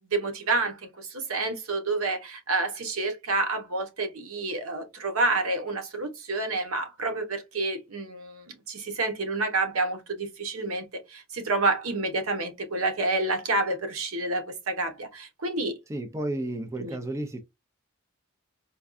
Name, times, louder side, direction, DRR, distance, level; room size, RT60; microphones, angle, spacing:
voice 1, 0.1-15.7 16.8-17.0, right 3 dB, 85° right, 0.9 m, -29 dB
voice 2, 15.9-17.4, right 1 dB, 15° right, 0.4 m, -32 dB
4.3 x 2.3 x 2.5 m
head